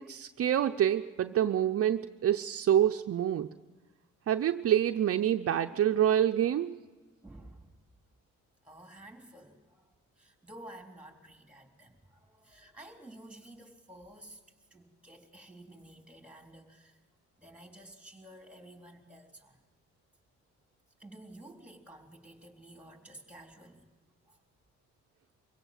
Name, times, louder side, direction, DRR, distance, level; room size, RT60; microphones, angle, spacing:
voice 1, 0.0-3.5 4.3-6.8, right 10 dB, 50° right, 7 dB, 0.7 m, -27 dB
voice 2, 7.2-7.8 8.6-14.4 14.7-17.0 17.4-19.6 21.0-24.4, right 1 dB, 5° right, 3 dB, 3.7 m, -52 dB
24.0 x 16.5 x 7.5 m, 1.4 s
cardioid pair, 90°, 30 cm